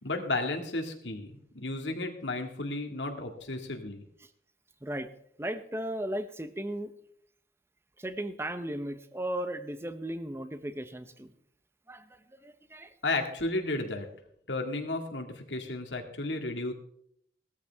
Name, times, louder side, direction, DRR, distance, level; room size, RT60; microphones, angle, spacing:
voice 1, 0.0-4.0 13.0-14.1 14.5-16.7, left 2 dB, 85° left, 4 dB, 2.2 m, -33 dB
voice 2, 5.4-6.9 8.0-11.3 11.9-12.0 12.4-12.9, right 1 dB, 15° right, 11 dB, 0.8 m, -36 dB
18.0 x 13.5 x 3.5 m, 0.69 s
head